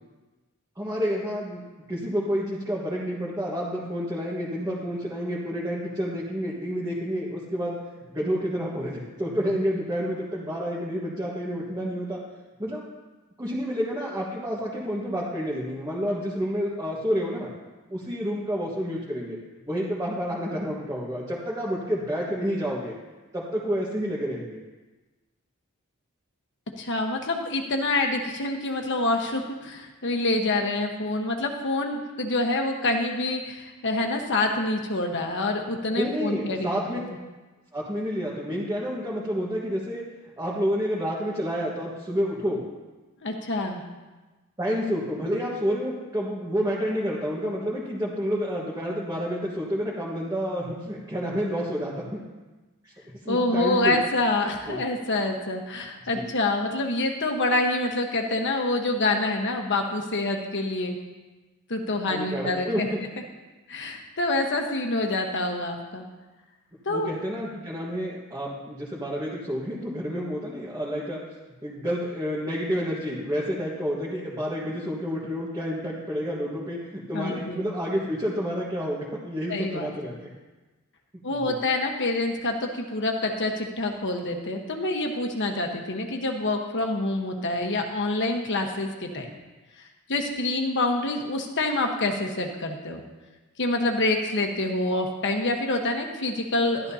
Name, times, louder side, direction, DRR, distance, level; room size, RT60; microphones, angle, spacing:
voice 1, 0.8-1.6 1.9-7.8 8.1-12.2 12.6-12.8 13.4-17.5 17.9-19.4 19.7-23.0 23.3-24.6 35.9-37.0 37.7-40.0 40.4-42.6 44.6-52.2 52.8-52.9 53.2-54.0 54.7-54.8 56.1-56.2 62.1-63.0 66.9-71.2 71.6-80.2 81.3-81.5, equal, 15° right, -5 dB, 1.5 m, -29 dB
voice 2, 26.8-37.0 43.2-43.8 53.3-61.0 61.7-62.9 63.7-66.0 66.8-67.1 77.1-77.6 79.5-79.9 81.2-89.3 90.1-93.0 93.6-96.9, left 2 dB, 55° left, 3 dB, 1.3 m, -26 dB
12.5 x 12.0 x 2.8 m, 1.2 s
head